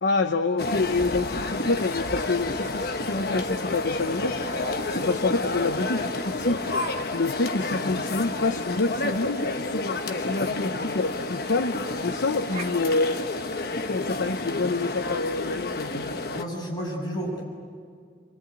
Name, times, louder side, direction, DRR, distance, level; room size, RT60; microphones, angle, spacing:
voice 1, 0.0-4.4 4.9-6.7 7.1-13.2 13.9-15.9, left 3 dB, 80° left, 7 dB, 0.9 m, -27 dB
sound 1, 0.6-16.4, left 2 dB, 55° left, 1.3 m, -30 dB
Laughter, 4.4-4.8 5.7-5.8 6.6-7.0 7.2-7.3 7.8-7.9 8.3-8.4 10.4-10.5 10.8-10.9 11.8-12.1 12.4-14.0, left 1 dB, 35° right, 1.6 m, -36 dB
voice 2, 16.3-17.4, equal, 20° left, -3 dB, 7.4 m, -31 dB
25.5 x 24.5 x 9.2 m, 2.1 s
head